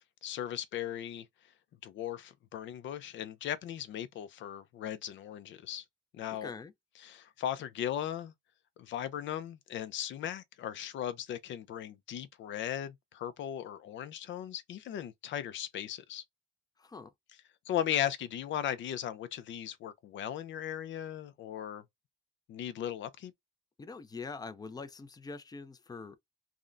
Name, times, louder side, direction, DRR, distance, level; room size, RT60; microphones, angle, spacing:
voice 1, 0.2-1.3 1.8-5.8 6.1-6.5 7.0-8.3 8.8-16.2 17.7-21.8 22.5-23.3, left 10 dB, 70° left, 0.5 m, -37 dB
voice 2, 6.3-6.7 16.8-17.1 23.8-26.2, left 4 dB, 20° left, 0.5 m, -44 dB
3.5 x 2.1 x 2.4 m
cardioid pair, 90°, 20 cm